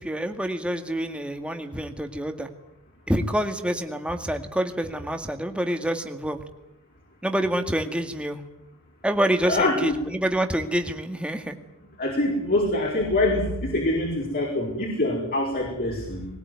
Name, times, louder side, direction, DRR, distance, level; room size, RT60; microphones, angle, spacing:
voice 1, 0.0-2.5 3.1-6.4 7.2-8.4 9.0-11.6, right 1 dB, 5° right, 6 dB, 2.1 m, -27 dB
voice 2, 9.4-9.9 12.0-16.3, left 1 dB, 45° left, 0 dB, 5.3 m, -24 dB
21.0 x 20.5 x 9.6 m, 0.85 s
head